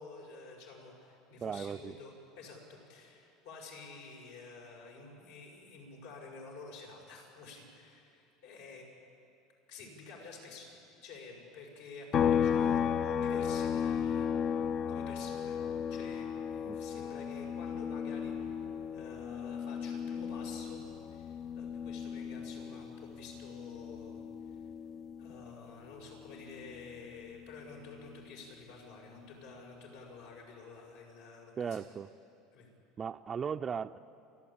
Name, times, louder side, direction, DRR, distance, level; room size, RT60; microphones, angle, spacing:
voice 1, 0.0-8.8 9.7-10.8 11.0-14.4 14.9-15.6 15.9-18.5 18.9-20.8 21.1-24.6 25.2-31.9 32.5-32.7, left 4 dB, 85° left, -1 dB, 6.0 m, -50 dB
voice 2, 1.4-2.0 16.7-16.8 31.6-32.1 33.0-34.0, right 7 dB, 25° right, 9 dB, 0.4 m, -37 dB
sound 1, 12.1-25.7 26.0-28.2, left 7 dB, 40° left, 0.4 m, -35 dB
29.5 x 12.0 x 8.7 m, 2.6 s
supercardioid pair, 125°, 0 cm